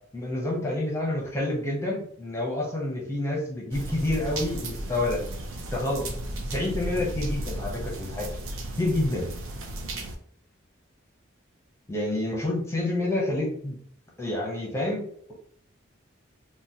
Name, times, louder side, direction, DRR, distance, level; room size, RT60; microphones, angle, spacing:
voice 1, 0.1-5.2 5.7-6.1 6.5-8.3 8.8-9.3 11.9-13.8 14.2-15.3, left 1 dB, 15° left, -3 dB, 0.7 m, -28 dB
sound 1, 3.7-10.2, right 1 dB, 90° right, 0.5 m, -34 dB
3.7 x 2.1 x 2.7 m, 0.62 s
head